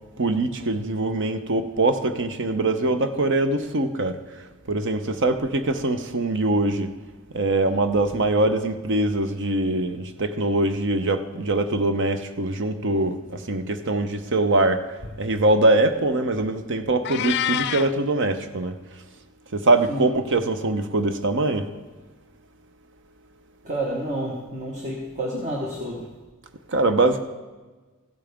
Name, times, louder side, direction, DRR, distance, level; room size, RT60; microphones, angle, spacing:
voice 1, 0.2-6.9 7.3-18.8 19.5-21.7 26.7-27.2, right 2 dB, 60° right, 9 dB, 0.8 m, -23 dB
Meow, 17.0-17.9, left 11 dB, 50° left, 0.4 m, -26 dB
voice 2, 23.6-26.2, right 1 dB, 35° right, -1 dB, 1.3 m, -30 dB
15.0 x 8.7 x 3.5 m, 1.3 s
head